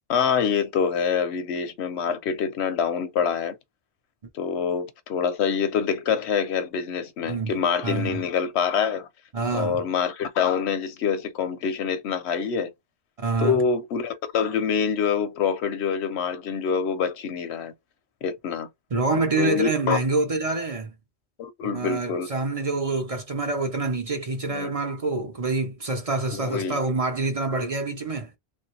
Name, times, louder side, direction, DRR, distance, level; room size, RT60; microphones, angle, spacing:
voice 1, 0.1-3.5 4.3-9.1 9.5-12.7 13.4-17.7 18.2-18.7 19.4-20.0 21.4-22.3 24.5-24.7 26.3-26.8, left 6 dB, 90° left, 1.0 m, -25 dB
voice 2, 7.2-7.6 7.8-8.2 9.3-9.8 13.2-13.6 18.9-20.9 21.6-28.3, right 3 dB, 40° right, 0.7 m, -26 dB
3.1 x 2.6 x 2.9 m
omnidirectional pair, 1.1 m